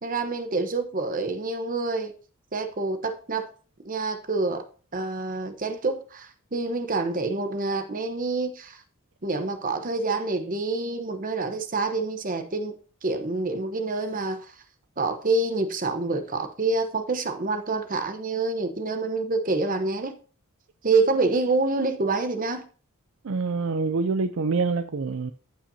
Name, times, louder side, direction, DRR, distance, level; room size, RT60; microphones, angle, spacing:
voice 1, 0.0-2.1 2.5-3.5 3.8-4.6 4.9-8.8 9.2-14.5 15.0-20.1 20.8-22.6, right 3 dB, 40° right, 1.0 m, -27 dB
voice 2, 23.2-25.3, right 4 dB, 65° right, 0.5 m, -26 dB
14.0 x 5.6 x 2.8 m
head